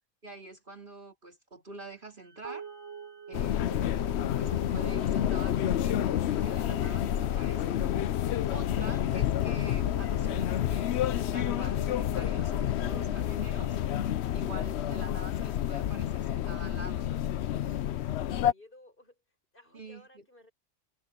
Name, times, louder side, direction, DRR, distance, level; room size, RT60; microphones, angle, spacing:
voice 1, 0.2-2.7 3.3-3.9 4.2-7.9 8.5-13.8 14.3-17.1 19.7-20.2, right 2 dB, 45° right, 3.2 m, -46 dB
Wind instrument woodwind instrument, 2.2-6.9, right 7 dB, 15° left, 7.0 m, -63 dB
sound 1, 2.4-15.0, right 6 dB, 20° right, 0.8 m, -48 dB
sound 2, 3.3-18.5, left 11 dB, 70° left, 0.9 m, -29 dB
voice 2, 18.1-19.2 19.5-20.5, left 1 dB, 45° left, 7.8 m, -57 dB
omnidirectional pair, 1.2 m